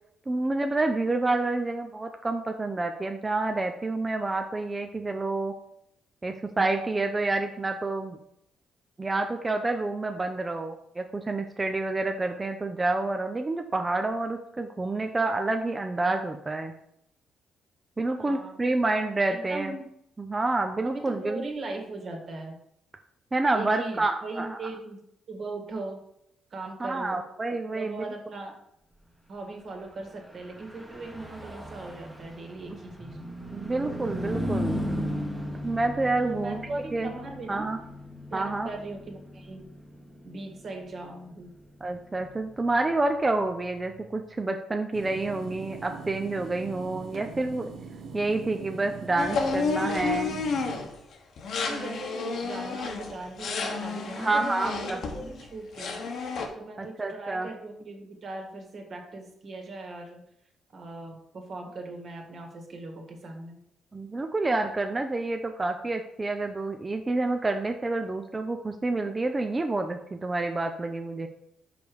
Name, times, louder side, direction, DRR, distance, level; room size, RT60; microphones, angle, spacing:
voice 1, 0.3-5.5 6.2-8.2 9.0-16.7 18.0-19.8 20.2-21.4 23.3-24.6 26.8-28.0 33.5-34.8 35.6-36.6 36.9-37.1 37.5-37.8 38.3-38.7 41.8-47.7 48.1-50.5 54.2-55.0 56.8-57.5 63.9-71.3, right 2 dB, 20° right, 5 dB, 0.5 m, -28 dB
voice 2, 18.2-18.8 19.3-19.8 20.8-22.6 23.5-25.0 25.3-26.0 26.5-27.2 27.7-28.5 29.3-33.1 36.2-37.7 38.3-39.7 40.2-41.5 51.7-56.1 56.5-60.2 60.7-63.6, right 2 dB, 50° right, 2 dB, 1.8 m, -39 dB
Car passing by / Truck, 30.2-44.0, equal, 5° right, 1.1 m, -37 dB
sound 1, 44.9-50.8, right 5 dB, 70° right, 0.9 m, -42 dB
sound 2, 49.2-50.9 51.4-55.5 55.8-56.5, left 4 dB, 65° left, 1.1 m, -31 dB
5.3 x 5.1 x 4.7 m, 0.74 s
cardioid pair, 90°, 0 cm